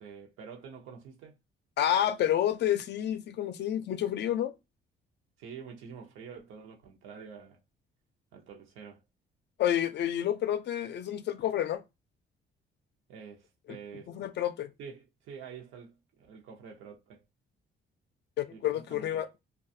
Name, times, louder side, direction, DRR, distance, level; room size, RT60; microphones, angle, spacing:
voice 1, 0.0-1.4 5.4-7.6 8.3-9.0 13.1-14.1 14.8-17.2 18.5-19.3, right 6 dB, 90° right, 0.7 m, -47 dB
voice 2, 1.8-4.5 9.6-11.8 14.1-14.7 18.4-19.3, left 11 dB, 60° left, 0.4 m, -29 dB
2.4 x 2.3 x 2.6 m
cardioid pair, 90°, 20 cm